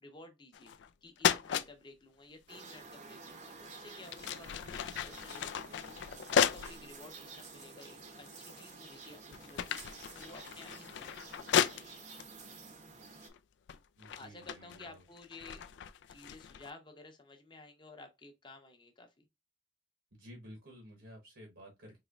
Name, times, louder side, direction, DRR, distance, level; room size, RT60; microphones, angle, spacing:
voice 1, 0.0-0.7 1.0-12.0 14.2-19.3, left 2 dB, 25° left, 0.7 m, -54 dB
sound 1, 0.5-0.9 1.2-1.7 3.3-3.5 4.0-6.8 7.4-7.5 8.3-8.8 9.1-12.3 13.1-13.4 13.7-16.7, left 8 dB, 65° left, 0.3 m, -34 dB
sound 2, 2.5-13.3, right 4 dB, 35° right, 0.7 m, -51 dB
voice 2, 14.0-15.0 20.1-22.0, equal, 65° right, 1.1 m, -53 dB
4.2 x 3.0 x 2.3 m
head